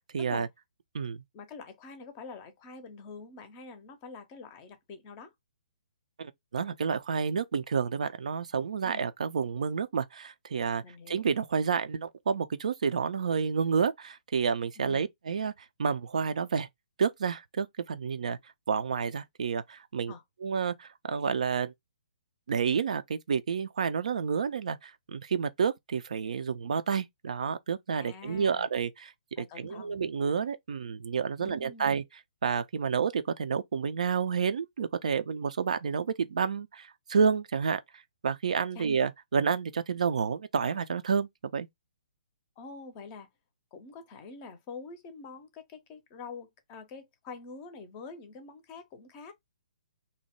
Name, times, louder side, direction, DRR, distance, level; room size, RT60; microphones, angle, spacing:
voice 1, 0.1-0.5 0.9-1.2 6.2-15.5 15.8-16.7 17.0-18.4 18.7-20.1 20.4-21.7 22.5-29.1 29.4-32.0 32.4-37.8 38.2-41.7, right 6 dB, 55° right, 0.3 m, -30 dB
voice 2, 1.3-5.3 8.8-9.0 10.8-11.3 14.8-15.1 20.1-20.2 28.0-28.7 29.4-30.0 31.4-31.9 38.7-38.9 42.6-43.3 43.7-49.3, left 4 dB, 25° left, 0.6 m, -46 dB
2.7 x 2.1 x 3.0 m
figure-of-eight pair, 130°, 4 cm